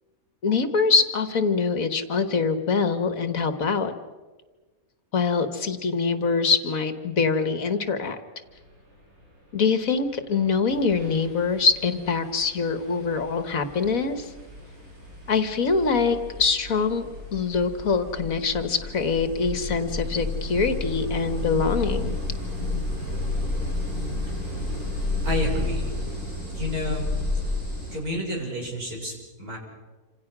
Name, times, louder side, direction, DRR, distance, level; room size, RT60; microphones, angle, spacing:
voice 1, 0.4-3.9 5.1-8.2 9.5-14.3 15.3-22.2, left 5 dB, 65° left, 9 dB, 2.0 m, -24 dB
sound 1, 10.2-10.3 10.7-28.0, left 2 dB, 65° right, 8.4 m, -32 dB
voice 2, 25.2-25.9 26.5-27.1 27.9-29.6, left 1 dB, 80° right, 0 dB, 6.8 m, -30 dB
28.0 x 27.0 x 6.2 m, 1.3 s
omnidirectional pair, 1.5 m